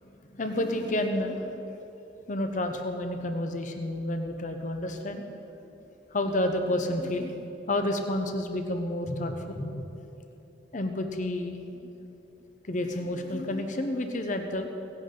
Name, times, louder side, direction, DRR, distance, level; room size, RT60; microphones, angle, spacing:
voice 1, 0.3-1.6 2.3-5.2 6.1-7.4 7.7-9.9 10.7-11.6 11.8-11.9 12.7-14.7, left 1 dB, 45° left, 6 dB, 0.8 m, -30 dB
17.0 x 11.0 x 3.9 m, 3.0 s
head